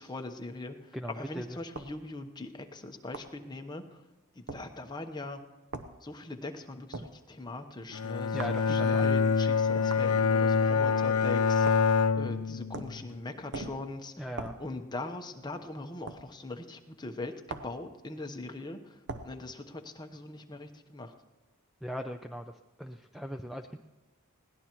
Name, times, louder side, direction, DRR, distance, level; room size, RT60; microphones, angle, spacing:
voice 1, 0.0-0.8 1.1-3.8 4.4-5.4 6.0-18.8 19.2-21.1, left 2 dB, 20° left, 5 dB, 0.9 m, -41 dB
voice 2, 0.9-1.5 8.3-9.1 9.7-9.9 14.2-14.6 21.8-22.4 22.8-23.8, equal, ahead, 6 dB, 0.4 m, -38 dB
two large cobblestone blocks, 1.7-2.0 3.1-3.4 4.5-4.7 5.7-5.9 6.9-7.1 8.4-8.6 9.9-10.1 11.6-11.9 12.7-13.0 13.5-13.8 14.4-14.6 16.1-16.2 17.5-17.8 19.1-19.3, right 3 dB, 55° right, 0.8 m, -40 dB
Bowed string instrument, 7.9-13.2, left 5 dB, 80° left, 0.6 m, -26 dB
21.0 x 17.5 x 3.0 m, 1.1 s
head